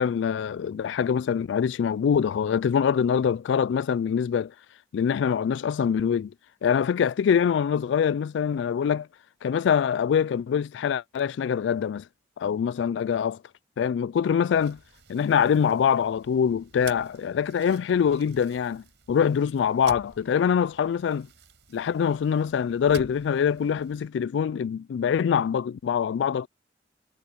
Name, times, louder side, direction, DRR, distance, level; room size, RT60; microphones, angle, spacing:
voice 1, 0.0-4.5 4.9-6.3 6.6-9.1 9.4-12.0 12.4-13.4 13.8-14.8 15.1-21.3 21.7-26.5, left 7 dB, 75° left, 0.3 m, -24 dB
sound 1, 14.5-24.1, right 5 dB, 70° right, 6.1 m, -50 dB
head